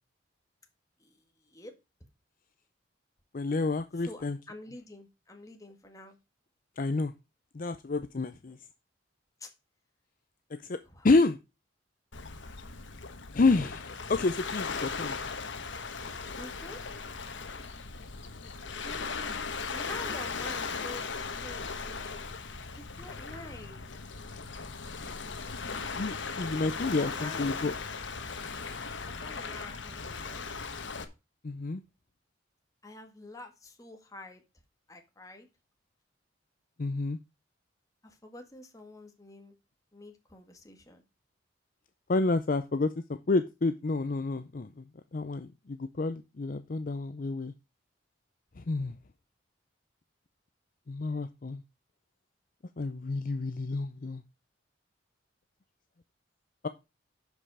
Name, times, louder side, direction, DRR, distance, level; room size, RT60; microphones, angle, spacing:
voice 1, 1.0-1.7 4.0-6.2 8.5-8.6 9.4-9.5 10.8-11.1 16.3-16.8 18.8-21.0 21.4-22.4 22.8-23.9 27.0-27.5 29.0-30.4 32.8-34.4 34.9-35.5 38.0-39.5 39.9-41.0, left 2 dB, 15° left, 4 dB, 1.8 m, -47 dB
voice 2, 3.3-4.4 6.8-7.1 7.5-8.6 10.7-10.8 11.0-11.4 13.3-15.2 26.0-27.7 31.4-31.8 36.8-37.2 42.1-44.8 45.1-47.5 48.6-48.9 50.9-51.6 52.8-54.2 56.6-56.7, left 3 dB, 45° left, 10 dB, 0.5 m, -29 dB
Waves surf, 12.1-31.0, left 5 dB, 75° left, 1.2 m, -38 dB
11.5 x 5.4 x 4.8 m, 0.27 s
head